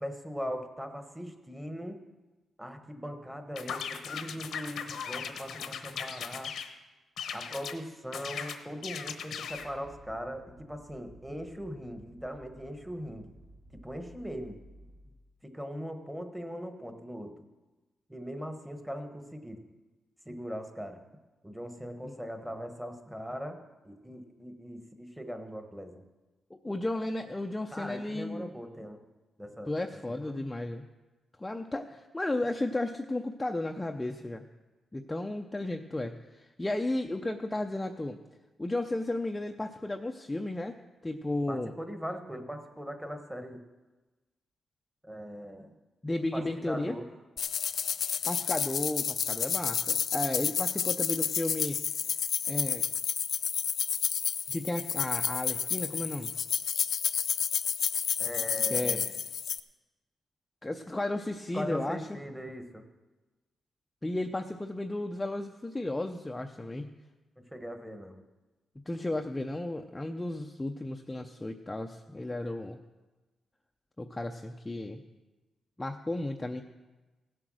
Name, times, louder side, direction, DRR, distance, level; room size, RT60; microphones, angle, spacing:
voice 1, 0.0-2.0 2.6-6.5 7.3-13.3 13.7-14.6 15.4-17.3 18.1-19.6 20.2-21.0 21.4-26.0 27.7-29.0 29.4-29.7 30.2-30.4 41.5-43.6 45.0-45.7 46.3-47.1 58.2-59.1 61.5-62.8 67.4-68.2, equal, 5° right, 6 dB, 1.2 m, -40 dB
sound 1, 3.6-6.7 7.2-7.8 8.1-9.7, left 7 dB, 75° left, 1.0 m, -38 dB
sound 2, 9.4-15.2, right 1 dB, 60° right, 1.4 m, -55 dB
voice 2, 26.6-28.5 29.7-30.8 31.4-34.4 34.9-38.2 38.6-40.8 41.0-41.7 46.0-47.0 48.2-51.8 52.5-52.8 54.5-56.3 58.7-59.0 60.6-62.2 64.0-66.9 68.9-72.8 74.0-75.0 75.8-76.6, left 2 dB, 10° left, 4 dB, 0.5 m, -34 dB
sound 3, 47.4-59.6, left 7 dB, 60° left, 0.5 m, -30 dB
16.5 x 7.7 x 6.3 m, 1.2 s
wide cardioid pair, 140°, 0 cm